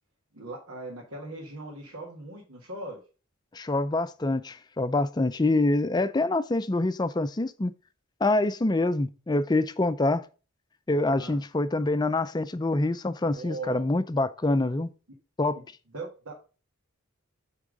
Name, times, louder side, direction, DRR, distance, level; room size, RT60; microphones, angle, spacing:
voice 1, 0.3-3.0 11.1-11.4 13.2-13.8 15.5-15.6 15.9-16.4, right 2 dB, 85° right, 1.8 m, -39 dB
voice 2, 3.5-7.7 8.2-10.2 10.9-14.9 15.4-15.6, left 2 dB, 20° left, 0.4 m, -26 dB
8.5 x 3.6 x 5.1 m
head